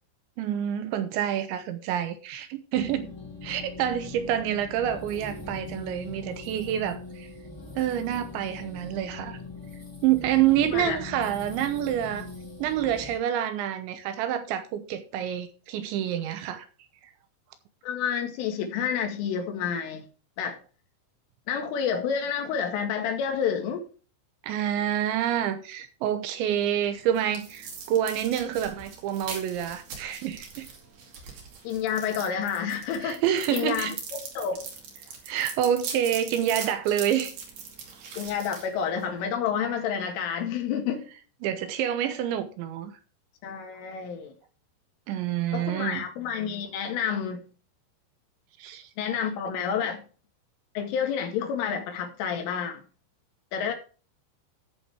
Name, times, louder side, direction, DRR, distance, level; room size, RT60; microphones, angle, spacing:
voice 1, 0.4-3.1 3.4-7.3 7.8-9.4 10.0-12.3 12.6-16.7 24.4-30.7 33.0-34.0 35.3-37.3 41.4-43.0 45.1-46.0 48.6-48.9, right 10 dB, 75° right, 3.1 m, -27 dB
sound 1, 2.7-13.2, left 3 dB, 10° left, 1.7 m, -41 dB
voice 2, 10.6-11.0 17.8-20.0 20.4-20.6 21.5-23.9 31.6-33.2 33.5-34.6 38.2-41.0 43.4-44.3 45.5-47.5 49.0-50.0 50.8-52.8 53.5-53.7, left 7 dB, 80° left, 4.4 m, -29 dB
sound 2, 26.6-39.3, right 5 dB, 55° right, 3.9 m, -41 dB
14.0 x 7.2 x 3.5 m
omnidirectional pair, 5.6 m